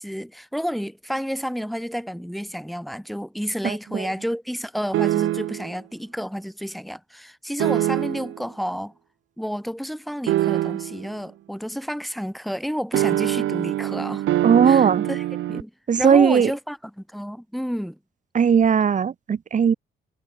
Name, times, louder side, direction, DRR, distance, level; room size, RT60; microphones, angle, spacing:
voice 1, 0.0-8.9 9.4-14.2 14.6-15.7 16.0-18.0, equal, ahead, 6.2 m, -30 dB
voice 2, 3.6-4.1 14.4-15.1 15.9-16.5 18.3-19.7, right 7 dB, 40° right, 1.0 m, -18 dB
sound 1, 4.9-5.7 7.6-8.4 10.3-11.1 12.9-15.6, right 14 dB, 80° right, 2.2 m, -24 dB
cardioid pair, 90°, 20 cm